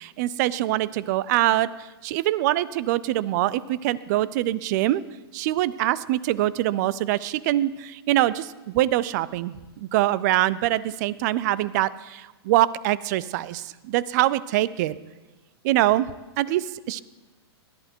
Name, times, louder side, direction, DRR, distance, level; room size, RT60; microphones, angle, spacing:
voice 1, 0.0-5.0 5.3-14.9 15.6-16.1 16.4-17.0, right 15 dB, 40° right, 19 dB, 0.5 m, -24 dB
19.0 x 11.5 x 4.5 m, 1.2 s
hypercardioid pair, 140°, 14 cm